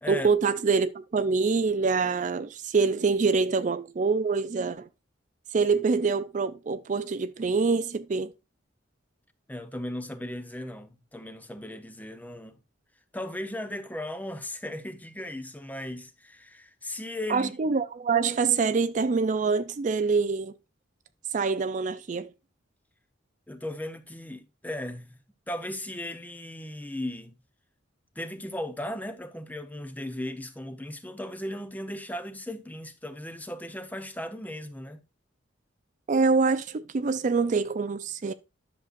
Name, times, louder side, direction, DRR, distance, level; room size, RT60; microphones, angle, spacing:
voice 1, 0.1-4.9 5.5-8.3 17.3-20.5 21.3-22.3 36.1-38.3, right 4 dB, 40° right, 0.4 m, -25 dB
voice 2, 9.5-12.6 13.1-17.5 23.5-25.2 25.5-27.4 28.2-35.0, left 1 dB, 10° left, 0.7 m, -37 dB
10.5 x 6.6 x 2.4 m
head